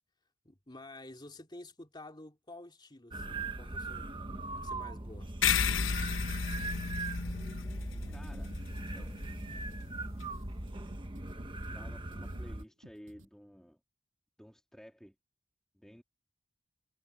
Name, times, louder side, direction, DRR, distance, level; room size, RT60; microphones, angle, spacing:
voice 1, 0.4-4.1 4.6-5.3, left 2 dB, 25° left, 2.9 m, -50 dB
sound 1, 3.1-12.6, right 2 dB, 25° right, 1.2 m, -40 dB
sound 2, 5.4-10.3, left 6 dB, 80° left, 0.9 m, -34 dB
sound 3, 5.6-13.3, right 1 dB, 85° right, 7.2 m, -57 dB
voice 2, 8.1-8.5 8.9-9.2 11.7-13.8 14.4-15.1 15.7-16.0, equal, 5° left, 3.4 m, -53 dB
head